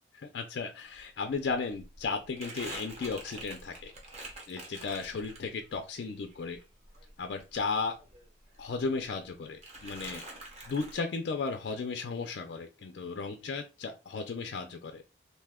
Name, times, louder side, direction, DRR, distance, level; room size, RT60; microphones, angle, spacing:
voice 1, 0.1-3.9 4.5-6.6 7.2-7.9 8.6-10.2 10.7-15.0, left 4 dB, 65° left, 5 dB, 0.4 m, -35 dB
Crumpling crinkling, 1.0-1.1 1.3-5.8 6.1-8.3 8.5-9.3 9.6-11.0, right 2 dB, 35° right, 0.8 m, -46 dB
2.6 x 2.1 x 3.5 m, 0.29 s
head